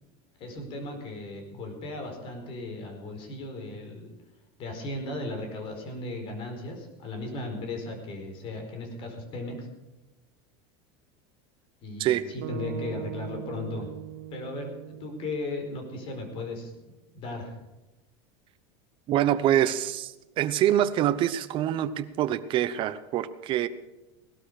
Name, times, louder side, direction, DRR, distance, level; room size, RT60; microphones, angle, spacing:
voice 1, 0.4-4.1 4.6-9.7 11.8-13.9 14.3-14.7 15.0-16.7 17.1-17.6, left 2 dB, 40° left, 4 dB, 4.7 m, -36 dB
sound 1, 12.4-16.7, right 14 dB, 85° right, 1.0 m, -41 dB
voice 2, 19.1-20.1 20.4-23.7, right 11 dB, 40° right, 11 dB, 0.9 m, -25 dB
17.5 x 12.5 x 5.0 m, 1.1 s
supercardioid pair, 145°, 13 cm